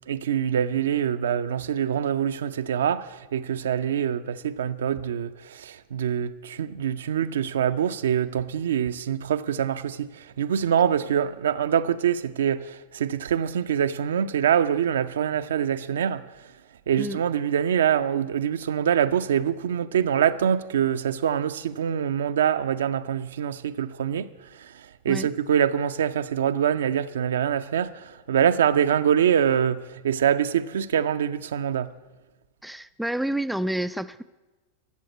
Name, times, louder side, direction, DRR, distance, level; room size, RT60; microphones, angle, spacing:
voice 1, 0.1-16.2 16.9-31.9, right 9 dB, 65° right, 0.5 m, -25 dB
voice 2, 32.6-34.2, right 1 dB, ahead, 0.3 m, -29 dB
12.5 x 7.6 x 8.2 m
figure-of-eight pair, 90°, 0 cm